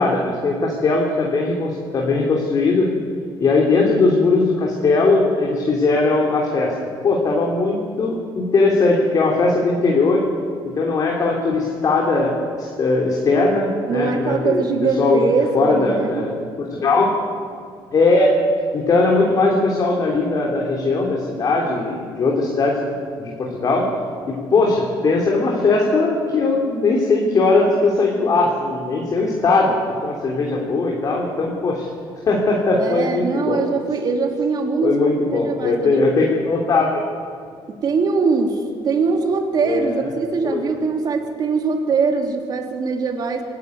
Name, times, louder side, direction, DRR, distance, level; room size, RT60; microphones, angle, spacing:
voice 1, 0.0-2.9 3.4-6.7 7.0-10.2 10.6-14.6 15.0-15.2 15.5-16.3 16.6-17.2 17.9-18.4 18.7-22.8 23.2-23.9 24.3-29.8 30.0-31.9 32.2-33.6 34.8-37.0 39.6-40.1 40.4-40.6, left 3 dB, 40° left, -1 dB, 3.2 m, -19 dB
voice 2, 13.9-16.2 32.8-36.0 37.7-43.4, right 4 dB, 45° right, 3 dB, 3.1 m, -22 dB
25.5 x 12.0 x 9.4 m, 2.3 s
cardioid pair, 130°, 9 cm